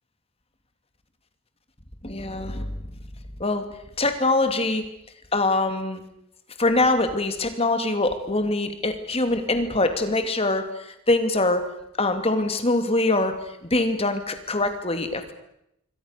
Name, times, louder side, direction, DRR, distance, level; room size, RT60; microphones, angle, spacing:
voice 1, 2.0-2.8 3.4-3.6 4.0-4.8 5.3-6.0 6.6-11.6 12.0-13.3 13.6-15.3, left 2 dB, 30° left, 7 dB, 2.7 m, -23 dB
27.0 x 23.5 x 6.8 m, 0.79 s
head